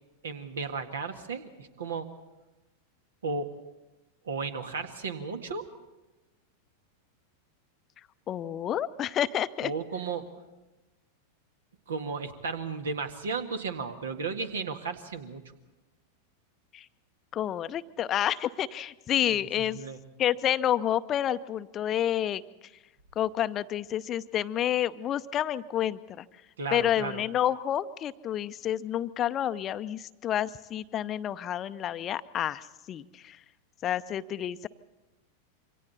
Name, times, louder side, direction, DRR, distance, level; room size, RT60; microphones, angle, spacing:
voice 1, 0.2-2.1 3.2-3.5 4.2-5.6 9.6-10.3 11.9-15.4 19.3-20.0 26.6-27.2, right 4 dB, 65° right, 7 dB, 1.8 m, -34 dB
voice 2, 8.3-9.7 16.7-16.9 17.3-19.8 20.2-22.4 23.2-26.3 26.7-33.4 33.8-34.7, left 11 dB, 30° left, 13 dB, 0.7 m, -29 dB
27.5 x 24.5 x 4.2 m, 1.0 s
figure-of-eight pair, 90°, 0 cm